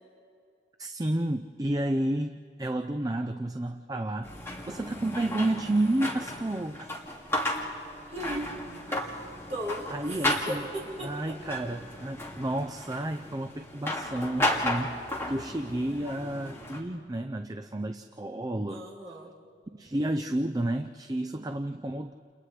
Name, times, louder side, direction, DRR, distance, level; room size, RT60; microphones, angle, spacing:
voice 1, 0.8-2.3 2.6-4.3 4.7-6.9 8.9-9.0 9.9-10.7 11.0-18.9 19.7-22.1, right 1 dB, 20° right, 7 dB, 0.5 m, -31 dB
sound 1, 4.2-16.8, left 1 dB, 15° left, 2.3 m, -34 dB
voice 2, 8.1-8.5 9.5-11.3 15.8-16.1 18.7-19.5, equal, 35° right, -5 dB, 5.0 m, -37 dB
30.0 x 29.5 x 3.3 m, 2.4 s
head